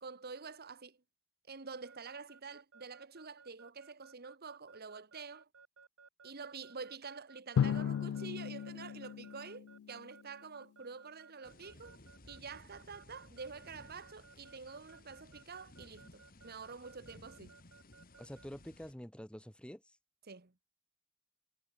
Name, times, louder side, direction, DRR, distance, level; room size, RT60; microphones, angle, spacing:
voice 1, 0.0-1.0 1.5-5.5 6.2-12.0 12.3-17.6 20.3-20.5, right 5 dB, 50° right, 1.4 m, -48 dB
Keyboard (musical) / Alarm, 1.9-18.5, right 5 dB, 80° right, 2.3 m, -59 dB
Drum, 7.6-10.2, left 8 dB, 80° left, 0.3 m, -35 dB
sound 1, 11.4-18.9, left 1 dB, 45° left, 3.0 m, -59 dB
voice 2, 18.2-20.0, equal, 5° left, 1.5 m, -47 dB
head